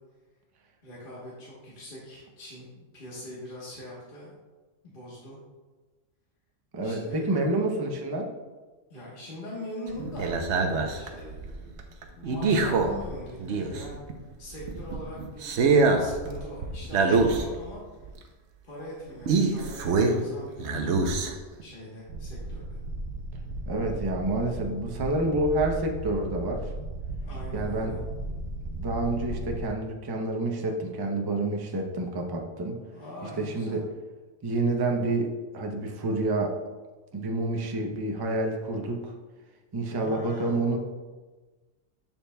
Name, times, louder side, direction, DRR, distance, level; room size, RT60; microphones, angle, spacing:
voice 1, 0.8-4.3 4.8-5.4 6.8-7.5 8.9-10.4 10.9-14.0 14.4-15.6 16.0-18.3 18.6-22.8 27.2-28.0 32.9-33.8 39.8-40.6, left 1 dB, 45° left, -6 dB, 1.3 m, -42 dB
voice 2, 6.7-8.3 23.7-26.7 27.5-27.9 28.7-32.8 33.4-33.8 34.4-36.6 37.1-39.1 39.7-40.8, right 2 dB, 25° right, 2 dB, 0.5 m, -28 dB
sound 1, 9.9-14.1 14.5-17.7 18.1-18.2 19.3-20.3 20.6-21.6 22.1-29.7, right 3 dB, 65° right, 0.9 m, -28 dB
7.1 x 7.1 x 2.2 m, 1.3 s
omnidirectional pair, 1.3 m